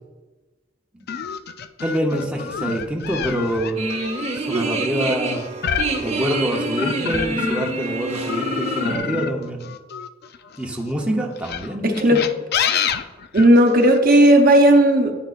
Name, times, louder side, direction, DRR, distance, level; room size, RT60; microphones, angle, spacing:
sound 1, 1.1-7.9 8.3-10.7 11.4-14.0, left 7 dB, 55° left, 0.4 m, -27 dB
voice 1, 1.8-3.8 4.4-5.5 6.0-9.6 10.6-12.2, right 1 dB, 5° right, 0 dB, 0.8 m, -25 dB
sound 2, 3.8-9.0, right 3 dB, 35° right, 1.0 m, -27 dB
voice 2, 11.8-12.2 13.3-15.1, right 1 dB, 50° right, 4 dB, 0.9 m, -14 dB
10.0 x 9.4 x 2.5 m, 1.2 s
head